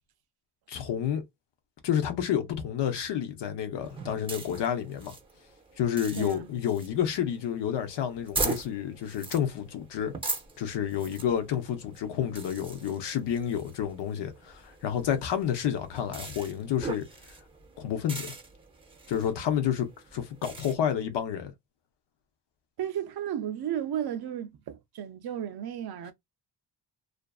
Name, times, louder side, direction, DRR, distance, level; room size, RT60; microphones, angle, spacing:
voice 1, 0.7-1.2 1.8-5.2 5.8-10.1 10.6-17.1 17.8-18.3 19.1-21.5, left 9 dB, 75° left, 0.8 m, -30 dB
sound 1, 3.8-20.7, right 3 dB, 15° right, 0.6 m, -40 dB
voice 2, 6.2-6.5 22.8-26.1, right 10 dB, 60° right, 0.5 m, -34 dB
2.5 x 2.4 x 2.3 m
cardioid pair, 90°, 43 cm